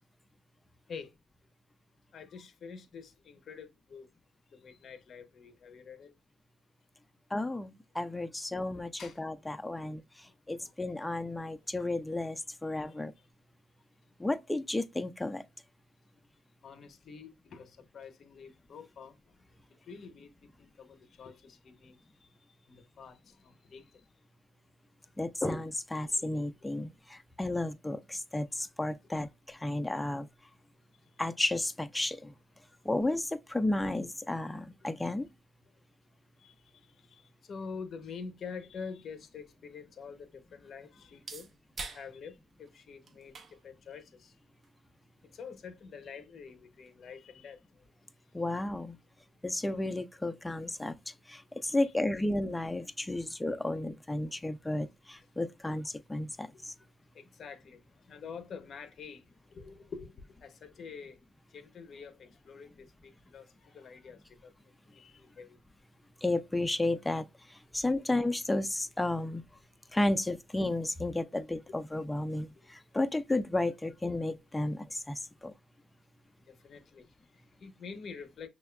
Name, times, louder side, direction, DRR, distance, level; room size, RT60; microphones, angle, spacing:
voice 1, 2.1-4.1 4.5-6.2 8.1-8.3 9.0-9.6 10.6-10.7 12.7-13.0 16.6-19.4 19.7-24.1 26.1-26.5 30.9-31.1 36.4-41.5 41.9-44.4 45.2-47.8 54.3-54.4 56.5-56.9 57.1-61.2 61.5-65.6 69.8-70.2 72.6-72.7 76.5-78.5, left 5 dB, 55° left, 0.7 m, -48 dB
voice 2, 7.3-8.9 9.2-13.1 14.2-15.4 25.2-30.3 31.2-32.3 32.8-35.3 48.3-49.0 49.4-56.7 66.2-69.4 69.9-75.5, left 2 dB, 10° left, 0.4 m, -33 dB
sound 1, 39.1-46.7, right 4 dB, 50° right, 0.6 m, -51 dB
6.0 x 2.2 x 2.2 m
cardioid pair, 90°, 0 cm